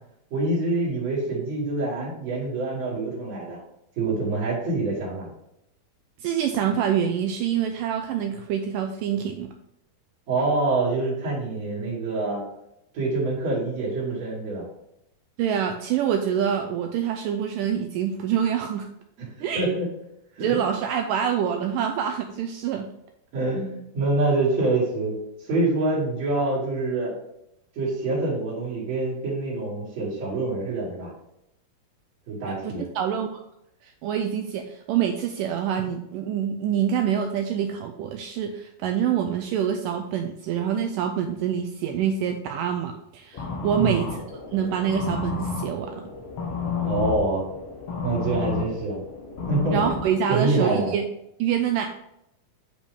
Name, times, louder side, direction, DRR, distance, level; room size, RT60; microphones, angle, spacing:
voice 1, 0.3-3.6 4.0-5.3 10.3-12.4 12.9-14.6 19.5-19.9 20.4-20.7 23.3-25.2 25.5-27.1 27.8-31.1 32.3-32.8 43.7-44.1 46.8-47.4 48.0-49.0 49.5-49.8 50.3-50.9, right 2 dB, 50° right, -8 dB, 3.8 m, -26 dB
voice 2, 6.2-9.5 15.4-18.9 19.4-19.8 20.4-22.9 32.4-33.4 33.8-44.2 44.5-46.0 49.7-51.1 51.4-51.9, right 8 dB, 85° right, 5 dB, 2.0 m, -26 dB
sound 1, 43.3-50.0, left 4 dB, 60° left, 1.7 m, -31 dB
8.6 x 5.2 x 3.5 m, 0.80 s
omnidirectional pair, 4.3 m